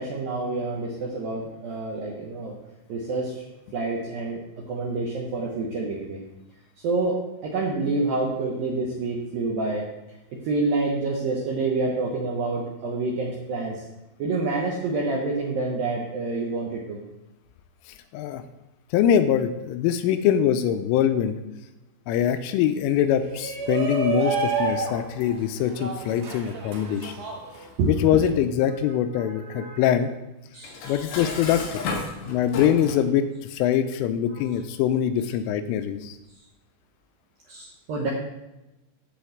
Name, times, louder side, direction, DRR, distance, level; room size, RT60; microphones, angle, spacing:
voice 1, 0.0-2.5 2.9-3.4 3.7-4.4 4.7-6.2 6.8-9.9 10.3-13.8 14.2-17.0 27.6-27.9 29.2-29.8 30.5-31.0 34.3-34.5 37.5-38.1, right 3 dB, 85° right, -2 dB, 2.0 m, -28 dB
voice 2, 18.9-21.4 22.1-27.1 27.9-30.1 30.9-31.8 32.3-36.2, left 9 dB, 85° left, 9 dB, 3.1 m, -23 dB
Shout, 23.2-28.3, right 5 dB, 55° right, 2.5 m, -30 dB
Dishes pots and pans, 30.6-33.1, left 4 dB, 70° left, 3.0 m, -33 dB
10.5 x 4.3 x 7.8 m, 0.97 s
omnidirectional pair, 5.6 m